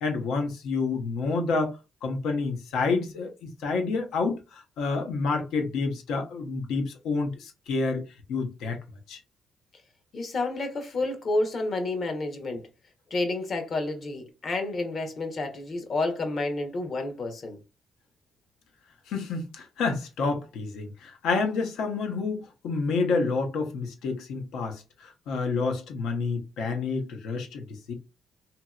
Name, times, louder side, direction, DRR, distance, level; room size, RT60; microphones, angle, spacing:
voice 1, 0.0-8.0 8.3-8.8 9.1-9.2 19.1-27.9, left 4 dB, 85° left, 0.8 m, -29 dB
voice 2, 10.1-12.6 13.1-17.6, left 2 dB, 50° left, 0.9 m, -30 dB
2.8 x 2.8 x 2.3 m
cardioid pair, 90°, 0 cm